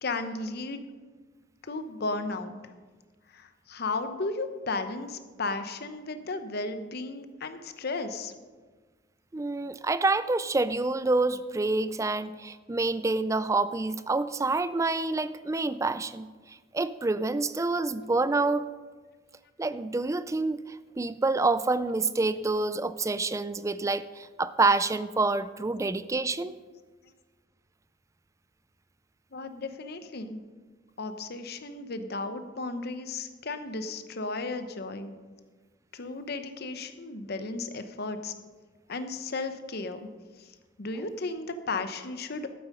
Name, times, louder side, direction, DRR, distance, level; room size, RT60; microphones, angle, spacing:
voice 1, 0.0-0.8 1.6-2.6 3.3-8.3 29.3-30.4 31.0-35.1 35.9-38.3 38.9-40.1 40.4-40.5 40.8-42.5, left 3 dB, 55° left, 9 dB, 0.9 m, -34 dB
voice 2, 9.3-18.7 19.6-26.5, right 3 dB, 15° right, 14 dB, 0.3 m, -27 dB
12.0 x 8.7 x 5.4 m, 1.4 s
head